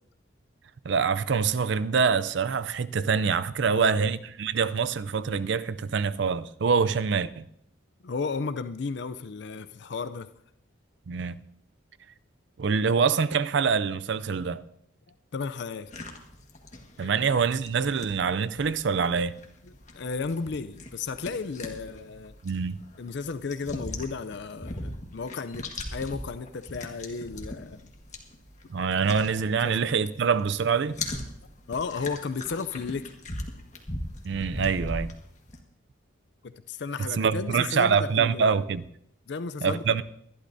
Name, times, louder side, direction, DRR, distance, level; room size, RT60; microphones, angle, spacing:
voice 1, 0.8-7.4 11.1-11.4 12.6-14.6 17.0-19.3 22.4-22.8 28.7-31.0 34.2-35.1 37.2-38.8 39.6-40.0, right 5 dB, 60° right, 0.4 m, -25 dB
voice 2, 3.7-4.1 8.0-10.3 15.3-15.9 17.0-17.1 19.6-22.3 23.0-25.6 25.9-27.9 29.6-29.8 31.7-33.2 36.4-38.6 39.3-40.0, left 4 dB, 55° left, 0.4 m, -34 dB
sound 1, 15.9-30.1 30.4-35.6, left 1 dB, 35° left, 1.6 m, -40 dB
23.5 x 11.5 x 2.7 m
head